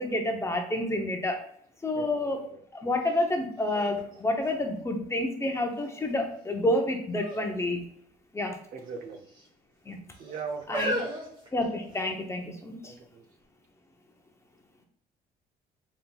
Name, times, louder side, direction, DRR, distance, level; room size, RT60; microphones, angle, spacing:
voice 1, 0.0-1.4 1.8-2.5 2.7-7.9 8.3-8.6 9.9-10.0 10.7-11.0 11.5-12.9, left 1 dB, 15° left, 3 dB, 0.7 m, -29 dB
voice 2, 1.9-2.6 8.7-9.3 10.2-11.1 12.8-13.2, right 5 dB, 55° right, 4 dB, 0.6 m, -40 dB
sound 1, 3.1-3.2 3.7-5.2 5.8-6.3 7.1-7.5 7.8-7.9 8.8-9.5 10.2-12.2 13.0-13.1, equal, 30° right, 1.3 m, -36 dB
4.0 x 3.7 x 2.2 m, 0.65 s
cardioid pair, 110°, 17 cm